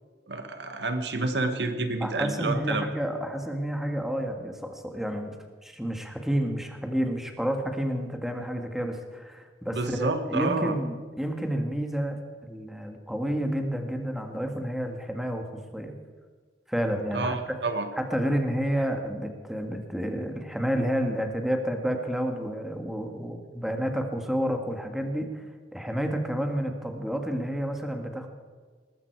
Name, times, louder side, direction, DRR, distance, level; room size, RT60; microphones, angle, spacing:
voice 1, 0.3-2.9 9.7-10.7 17.1-17.9, right 3 dB, 70° right, 7 dB, 1.6 m, -29 dB
voice 2, 2.0-5.3 5.6-15.5 15.7-15.9 16.7-17.6 18.0-25.5 25.7-28.3, equal, ahead, 4 dB, 1.8 m, -30 dB
19.5 x 15.0 x 4.7 m, 1.5 s
head